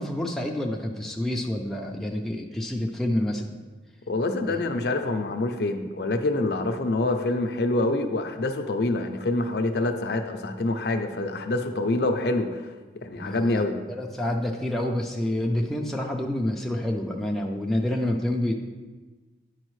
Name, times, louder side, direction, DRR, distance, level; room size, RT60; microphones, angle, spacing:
voice 1, 0.0-3.5 4.5-4.6 13.1-13.7 14.0-18.5, left 1 dB, ahead, -1 dB, 0.4 m, -28 dB
voice 2, 4.1-12.7 13.0-13.7, left 2 dB, 55° left, 6 dB, 0.5 m, -26 dB
9.6 x 4.9 x 3.1 m, 1.3 s
head